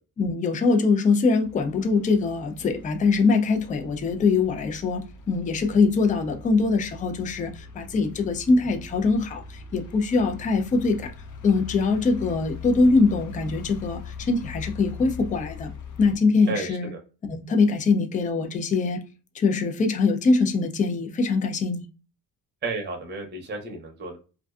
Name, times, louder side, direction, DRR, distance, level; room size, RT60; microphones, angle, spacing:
voice 1, 0.2-11.1 11.4-15.7 16.0-16.9 17.2-19.0 19.3-21.8, left 4 dB, 25° left, 0.4 m, -23 dB
sound 1, 1.4-16.2, left 5 dB, 60° left, 0.6 m, -41 dB
voice 2, 16.5-17.0 22.6-24.2, right 3 dB, 30° right, 0.7 m, -32 dB
2.5 x 2.3 x 2.3 m
cardioid pair, 100°, 33 cm